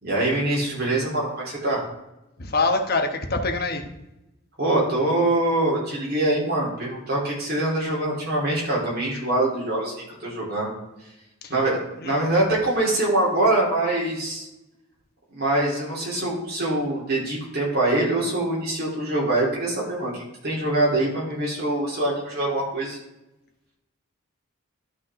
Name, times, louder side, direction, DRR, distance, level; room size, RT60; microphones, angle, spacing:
voice 1, 0.0-1.8 4.6-10.7 11.0-11.1 11.5-14.5 15.3-23.0, right 2 dB, 50° right, -5 dB, 3.5 m, -24 dB
voice 2, 2.4-3.9 12.0-12.1, left 3 dB, 45° left, 4 dB, 1.1 m, -24 dB
11.5 x 5.6 x 3.7 m, 0.91 s
head